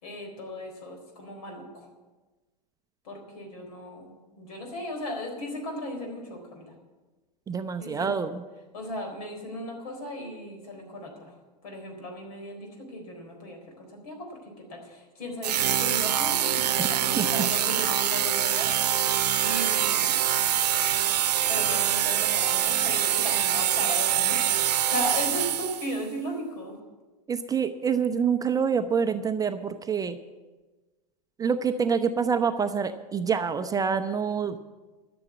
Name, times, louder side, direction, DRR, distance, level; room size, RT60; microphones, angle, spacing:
voice 1, 0.0-1.9 3.0-6.7 7.8-8.2 8.7-11.3 11.6-19.1 19.4-20.2 21.5-26.8, left 1 dB, 65° left, 4 dB, 4.1 m, -36 dB
voice 2, 7.5-8.4 16.8-16.9 17.2-17.5 27.3-30.2 31.4-34.6, right 6 dB, 15° right, 8 dB, 0.6 m, -26 dB
sound 1, 15.4-26.0, right 11 dB, 70° right, 0.8 m, -25 dB
13.5 x 7.0 x 8.4 m, 1.2 s
hypercardioid pair, 95°, 21 cm